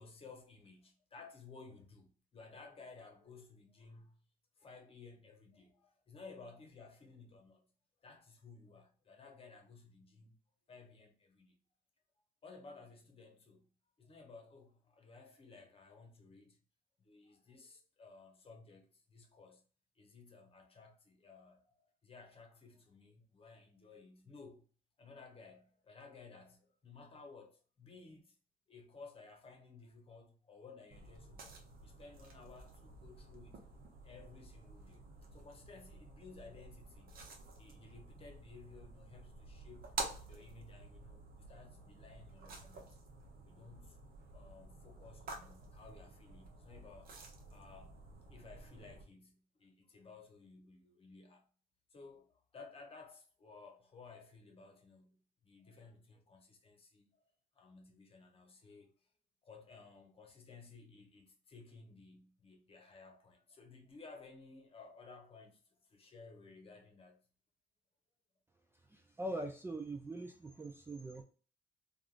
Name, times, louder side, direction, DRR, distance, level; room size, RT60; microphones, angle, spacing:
voice 1, 0.0-4.2 4.6-7.7 8.0-10.4 10.7-11.6 12.4-13.7 14.0-16.6 17.0-19.6 19.9-24.6 25.0-28.3 28.7-37.2 37.6-39.9 40.3-43.0 43.4-44.0 44.3-47.2 47.5-51.4 51.9-57.2 57.5-58.9 59.4-67.2, left 4 dB, 35° left, 0.9 m, -57 dB
sound 1, 30.9-49.0, right 3 dB, 65° right, 0.8 m, -50 dB
voice 2, 68.9-71.2, right 1 dB, 15° right, 0.4 m, -42 dB
3.5 x 2.4 x 2.5 m
cardioid pair, 100°, 17 cm